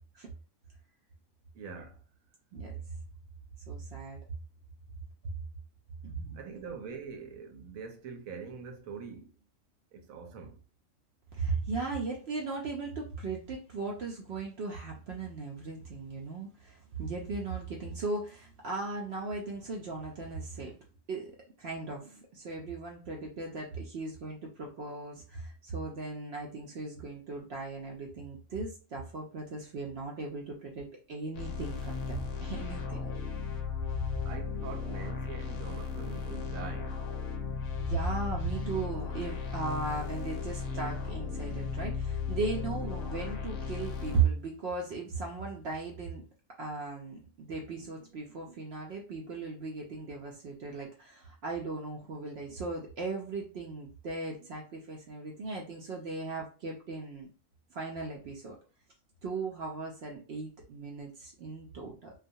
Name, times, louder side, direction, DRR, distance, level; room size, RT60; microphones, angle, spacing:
voice 1, 1.5-2.0 6.3-9.3 9.9-10.6 34.2-37.0, right 5 dB, 85° right, 1.0 m, -43 dB
voice 2, 3.7-4.2 6.0-6.5 11.3-20.8 21.1-21.3 21.6-33.1 37.7-46.2 46.6-57.3 57.7-58.6 59.2-62.1, right 4 dB, 65° right, 0.7 m, -37 dB
sound 1, 31.3-44.2, left 5 dB, 65° left, 0.8 m, -36 dB
2.4 x 2.2 x 2.6 m
omnidirectional pair, 1.4 m